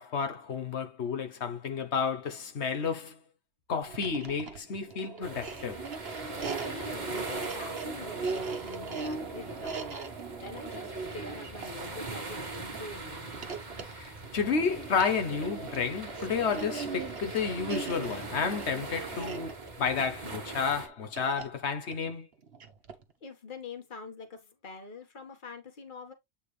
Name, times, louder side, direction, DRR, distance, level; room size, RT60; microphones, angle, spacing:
voice 1, 0.0-3.2 3.7-5.9 13.8-22.3, left 5 dB, 80° left, 1.3 m, -31 dB
sound 1, 3.9-23.1, right 4 dB, 65° right, 1.4 m, -39 dB
sound 2, 5.2-20.9, right 3 dB, 45° right, 1.6 m, -42 dB
voice 2, 6.5-10.0 10.4-13.3 23.2-26.1, left 3 dB, 50° left, 1.6 m, -45 dB
8.5 x 4.3 x 3.2 m
omnidirectional pair, 1.1 m